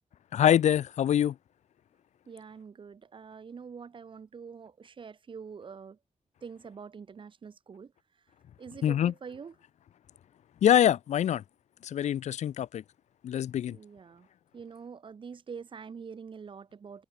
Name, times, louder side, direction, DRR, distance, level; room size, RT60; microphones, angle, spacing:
voice 1, 0.3-1.3 8.8-9.1 10.6-11.4 11.8-12.8 13.2-13.8, left 10 dB, 80° left, 0.4 m, -24 dB
voice 2, 2.3-6.0 6.4-7.9 8.6-9.5 13.7-14.3 14.5-17.0, right 6 dB, 45° right, 1.3 m, -45 dB
wide cardioid pair, 145°, 12 cm